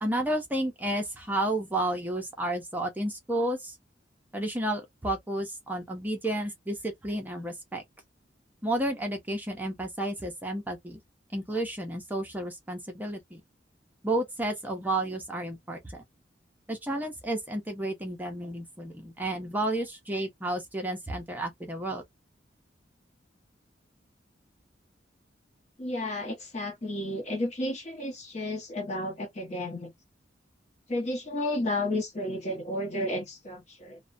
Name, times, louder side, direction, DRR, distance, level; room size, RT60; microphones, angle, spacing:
voice 1, 0.0-3.7 4.3-7.8 8.6-11.0 11.3-13.4 14.0-16.0 16.7-22.0, right 1 dB, 10° right, 0.5 m, -31 dB
voice 2, 25.8-29.9 30.9-34.0, left 1 dB, 40° left, 0.8 m, -32 dB
2.4 x 2.1 x 2.5 m
head